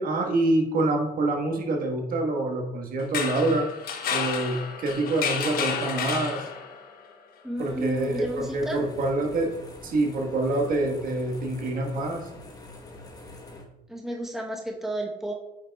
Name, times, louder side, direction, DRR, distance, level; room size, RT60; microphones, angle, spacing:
voice 1, 0.0-3.7 4.1-6.5 7.6-9.5 9.8-12.3, right 2 dB, 55° right, 2 dB, 1.4 m, -26 dB
sound 1, 3.0-6.9, left 6 dB, 60° left, 0.9 m, -31 dB
voice 2, 7.4-8.8 13.9-15.3, right 1 dB, ahead, 0 dB, 0.9 m, -32 dB
sound 2, 7.6-13.6, left 2 dB, 20° left, 1.1 m, -45 dB
8.7 x 5.7 x 2.3 m, 0.91 s
cardioid pair, 110°, 17 cm